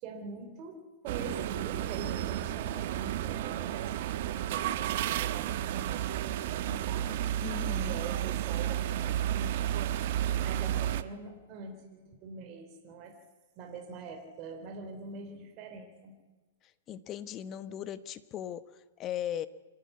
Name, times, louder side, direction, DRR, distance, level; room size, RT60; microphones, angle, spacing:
voice 1, 0.0-7.2 7.8-9.6 10.4-13.2 13.6-16.1, right 4 dB, 35° right, 4 dB, 3.9 m, -44 dB
sound 1, 1.1-11.0, right 12 dB, 50° right, 1.1 m, -32 dB
voice 2, 7.4-8.0 16.9-19.5, left 10 dB, 25° left, 13 dB, 1.1 m, -38 dB
26.5 x 12.0 x 9.7 m, 1.2 s
hypercardioid pair, 145°, 0 cm